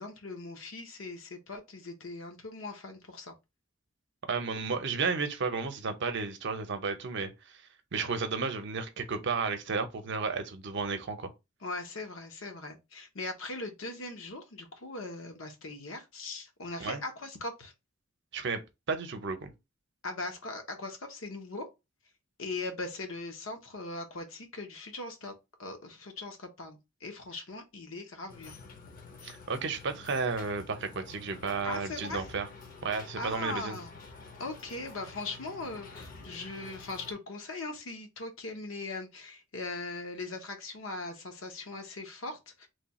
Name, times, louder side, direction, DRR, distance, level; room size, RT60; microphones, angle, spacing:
voice 1, 0.0-3.3 11.6-17.7 20.0-21.7 22.4-25.3 25.6-28.6 31.6-32.2 33.2-33.9 34.4-42.7, left 2 dB, 70° left, 0.9 m, -40 dB
voice 2, 4.3-7.6 7.9-11.3 16.8-17.0 18.3-18.6 18.9-19.5 29.2-32.5 32.8-33.8, right 4 dB, 60° right, 0.7 m, -33 dB
sound 1, 28.3-37.1, left 4 dB, 45° left, 0.7 m, -49 dB
3.2 x 2.3 x 4.1 m
head